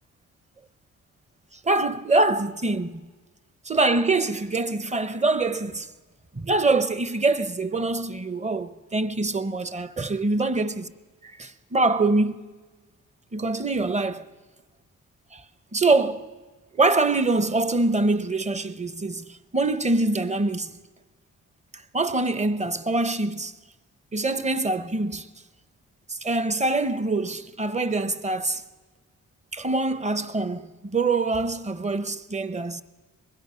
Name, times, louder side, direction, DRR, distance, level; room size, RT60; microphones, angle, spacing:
voice 1, 1.6-3.1 3.6-5.9 6.3-10.9 11.2-12.4 13.3-14.2 15.3-15.4 15.7-16.3 16.7-20.8 21.9-23.5 24.1-25.3 26.1-28.6 29.5-32.8, right 2 dB, 20° right, 0.8 m, -24 dB
23.5 x 21.0 x 5.6 m
wide cardioid pair, 120°, 34 cm